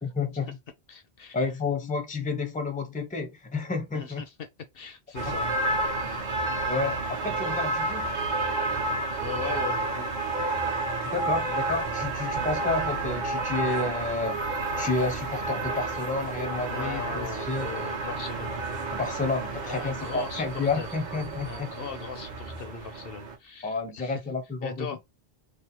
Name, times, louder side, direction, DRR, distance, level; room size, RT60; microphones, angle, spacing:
voice 1, 0.0-0.6 1.3-4.2 5.3-5.4 6.1-6.2 6.7-8.1 11.0-14.4 14.8-17.7 18.9-21.7 23.6-25.0, left 3 dB, 10° left, 0.6 m, -30 dB
voice 2, 0.9-1.4 3.9-4.5 4.7-5.8 9.2-10.1 16.7-18.6 19.6-20.9 21.5-24.2 24.6-25.0, left 6 dB, 65° left, 0.9 m, -39 dB
sound 1, 5.2-23.4, right 2 dB, 45° right, 0.9 m, -30 dB
3.3 x 2.1 x 4.3 m
omnidirectional pair, 1.1 m